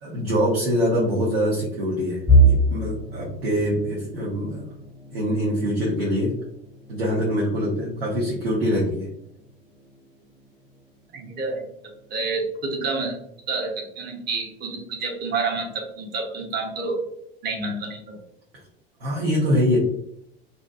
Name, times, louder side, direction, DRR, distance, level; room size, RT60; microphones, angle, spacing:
voice 1, 0.0-4.6 5.1-6.4 6.9-9.1 19.0-19.8, equal, 75° right, -6 dB, 0.8 m, -24 dB
sound 1, 2.3-14.1 14.5-14.8 15.2-15.3 16.2-16.7, right 1 dB, ahead, 0.6 m, -27 dB
voice 2, 11.1-11.7 12.1-13.2 13.5-17.0 17.4-18.2, right 3 dB, 35° right, -1 dB, 0.8 m, -28 dB
2.6 x 2.3 x 2.3 m, 0.76 s
figure-of-eight pair, 65°, 30 cm